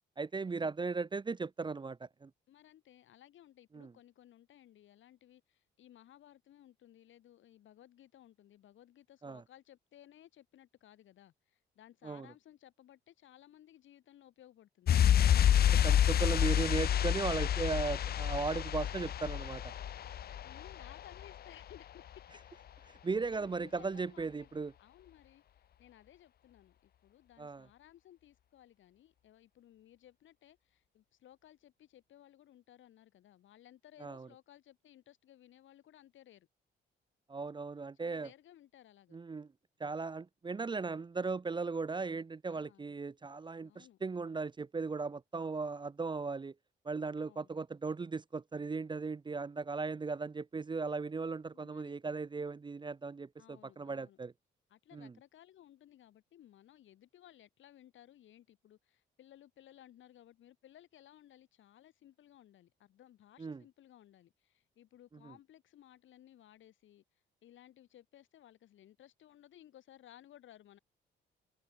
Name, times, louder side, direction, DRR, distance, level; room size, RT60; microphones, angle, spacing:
voice 1, 0.2-2.3 3.7-3.9 9.2-9.4 12.0-12.3 15.8-19.7 23.0-24.7 27.4-27.7 34.0-34.3 37.3-38.3 39.1-39.5 39.8-46.5 46.8-54.3 54.9-55.1 63.4-63.6, right 4 dB, 25° right, 0.7 m, -37 dB
voice 2, 2.5-15.0 15.6-17.5 20.4-22.4 23.3-24.5 24.8-36.5 37.9-39.2 42.5-43.0 43.6-44.0 47.2-47.5 51.5-52.0 53.4-54.2 54.7-70.8, left 12 dB, 75° left, 6.9 m, -59 dB
sound 1, 14.9-21.4 21.6-21.8, left 10 dB, 50° left, 0.6 m, -29 dB
open air
cardioid pair, 90°, 20 cm